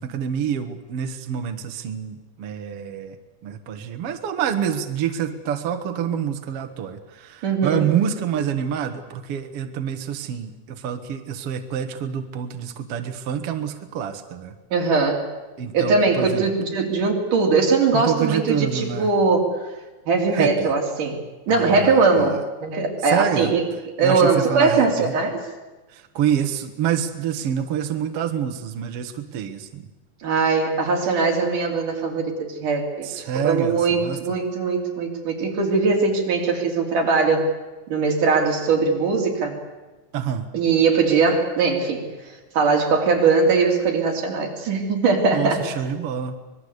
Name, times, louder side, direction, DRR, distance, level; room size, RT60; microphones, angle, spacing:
voice 1, 0.0-3.2 3.4-14.5 15.6-16.4 17.9-19.1 20.3-20.7 21.5-22.4 23.0-23.5 24.0-25.1 25.9-29.9 33.0-34.2 40.1-40.5 45.3-46.4, right 8 dB, 55° right, 6 dB, 2.2 m, -27 dB
voice 2, 7.4-7.9 14.7-15.2 15.7-19.5 20.1-21.2 21.5-23.7 24.0-25.4 30.2-37.5 37.9-39.6 40.5-42.1 42.5-45.6, right 4 dB, 85° right, 1 dB, 4.9 m, -20 dB
25.5 x 21.0 x 8.2 m, 1.2 s
omnidirectional pair, 3.6 m